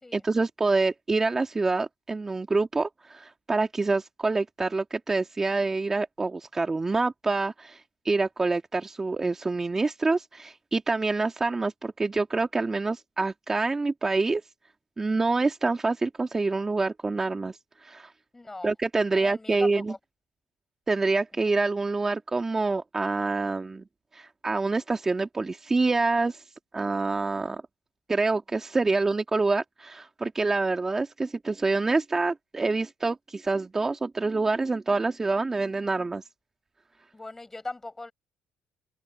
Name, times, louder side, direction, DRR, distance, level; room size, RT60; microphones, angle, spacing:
voice 1, 0.1-14.4 15.0-18.1 18.6-19.9 20.9-23.8 24.1-26.4 26.7-27.6 28.1-36.2, right 3 dB, 20° right, 1.8 m, -26 dB
voice 2, 18.3-18.7 19.1-20.0 37.1-38.1, left 2 dB, 15° left, 5.2 m, -39 dB
cardioid pair, 100°, 2 cm